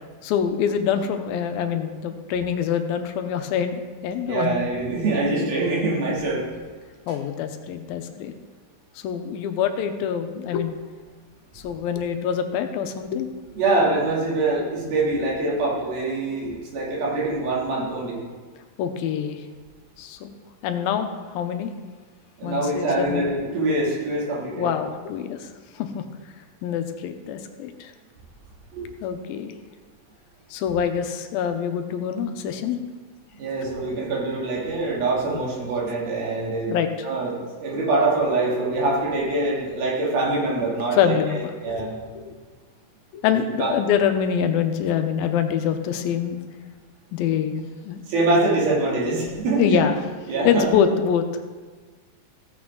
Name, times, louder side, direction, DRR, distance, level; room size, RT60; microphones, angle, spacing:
voice 1, 0.2-3.7 4.0-4.6 7.1-8.3 9.0-10.8 11.6-13.3 18.8-19.4 20.0-20.3 20.6-21.7 22.4-23.3 24.6-25.5 25.7-26.0 26.6-27.9 29.0-29.5 30.5-32.8 36.7-36.9 40.9-42.4 43.1-46.4 47.1-48.0 49.6-50.0 50.4-51.3, left 8 dB, 90° left, 7 dB, 2.6 m, -25 dB
voice 2, 4.3-6.4 13.6-18.2 22.4-24.7 28.7-28.9 33.3-36.8 37.0-42.0 43.6-43.7 48.1-49.8 50.3-50.7, right 2 dB, 85° right, -5 dB, 4.5 m, -24 dB
15.5 x 8.6 x 3.8 m, 1.4 s
omnidirectional pair, 4.2 m